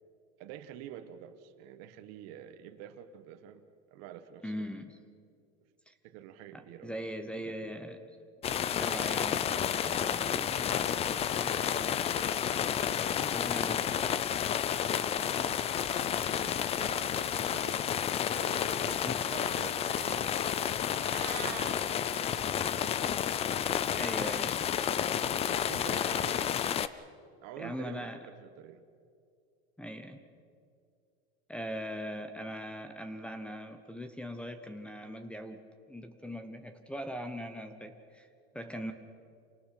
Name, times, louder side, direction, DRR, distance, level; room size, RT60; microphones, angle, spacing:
voice 1, 0.4-3.6 3.9-4.6 6.0-6.9 12.0-12.4 15.4-15.9 16.4-17.8 18.4-22.9 25.0-25.2 25.5-26.6 27.4-28.8, right 10 dB, 50° right, 7 dB, 1.5 m, -48 dB
voice 2, 4.4-5.0 5.9-6.0 6.5-8.1 8.7-10.8 11.4-11.7 13.2-14.4 19.0-19.3 24.0-24.6 27.6-28.2 29.8-30.2 31.5-38.3 38.5-38.9, equal, 5° left, 8 dB, 1.0 m, -41 dB
sound 1, 8.4-26.9, left 9 dB, 20° left, 0.4 m, -31 dB
Meow, 20.7-21.7, right 20 dB, 70° right, 0.6 m, -42 dB
28.5 x 19.0 x 5.9 m, 2.3 s
supercardioid pair, 145°, 32 cm